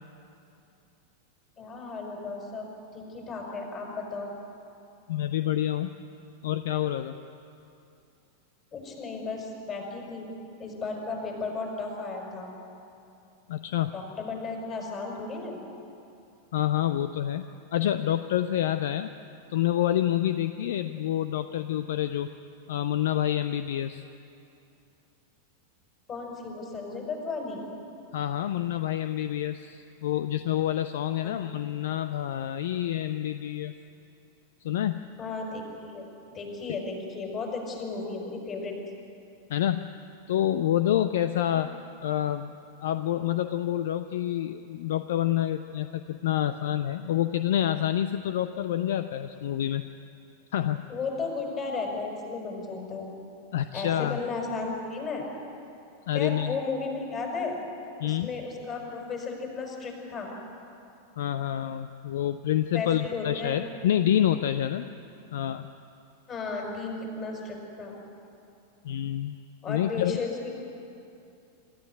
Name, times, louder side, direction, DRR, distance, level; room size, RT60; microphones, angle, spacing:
voice 1, 1.6-4.3 8.7-10.3 10.6-12.5 13.9-15.6 26.1-27.6 31.2-31.5 35.2-36.1 36.3-38.7 50.9-53.1 53.7-55.3 56.1-57.6 57.9-60.3 62.7-63.6 66.3-67.9 69.6-70.3, left 4 dB, 30° left, 1 dB, 5.9 m, -34 dB
voice 2, 5.1-5.9 6.4-7.2 13.5-14.0 16.5-19.1 19.5-22.3 22.7-24.0 28.1-33.7 34.6-35.1 39.5-39.9 40.3-41.7 42.0-42.5 42.8-49.8 50.5-50.8 53.5-54.2 56.1-56.5 58.0-58.3 61.2-64.9 65.3-65.7 68.8-69.4 69.7-70.1, left 11 dB, 55° left, 11 dB, 0.6 m, -27 dB
26.5 x 14.0 x 9.8 m, 2.7 s
figure-of-eight pair, 90°, 0 cm